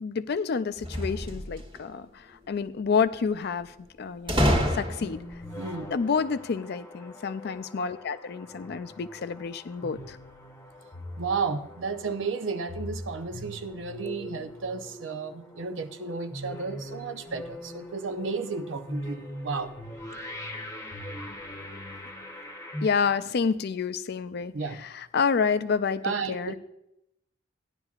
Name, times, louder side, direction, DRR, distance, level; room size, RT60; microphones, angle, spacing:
voice 1, 0.0-5.2 5.9-10.2 22.8-26.6, left 5 dB, 55° left, 13 dB, 0.4 m, -29 dB
sound 1, 0.8-1.8 4.3-5.3, equal, 25° right, 1.3 m, -26 dB
sound 2, 4.5-22.9, equal, 15° left, 0.9 m, -41 dB
voice 2, 5.6-5.9 11.2-19.7 24.5-24.8 26.0-26.6, right 4 dB, 85° right, 9 dB, 0.7 m, -33 dB
16.0 x 10.5 x 2.4 m, 0.85 s
head